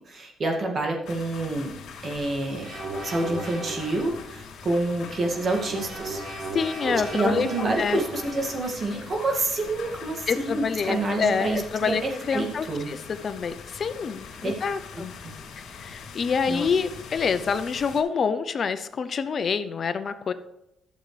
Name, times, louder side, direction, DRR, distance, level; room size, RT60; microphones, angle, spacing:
voice 1, 0.1-1.7 2.0-2.7 3.0-6.2 7.1-12.9 14.4-14.5 14.9-15.0 16.5-16.7, right 2 dB, 45° right, 1 dB, 2.1 m, -28 dB
sound 1, 1.1-18.0, left 5 dB, 75° left, 2.6 m, -43 dB
sound 2, 2.6-4.2 5.0-8.6, right 2 dB, 70° right, 3.4 m, -36 dB
voice 2, 6.5-8.0 10.3-12.0 12.3-13.0 13.2-15.1 15.7-20.3, left 6 dB, 50° left, 11 dB, 0.6 m, -27 dB
12.0 x 7.3 x 3.3 m, 0.85 s
cardioid pair, 90°, 0 cm